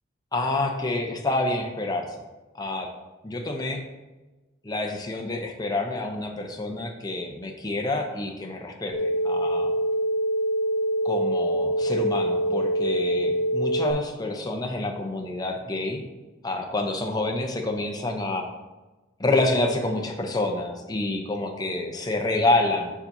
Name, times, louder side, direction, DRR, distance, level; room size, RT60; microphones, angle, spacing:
voice 1, 0.3-2.2 2.5-2.9 3.2-3.8 4.6-9.7 11.0-16.0 16.4-18.5 19.2-22.9, left 2 dB, 20° left, 2 dB, 0.7 m, -27 dB
sound 1, 8.9-13.9, right 1 dB, 40° left, 1.4 m, -25 dB
7.2 x 5.6 x 2.7 m, 1.1 s
head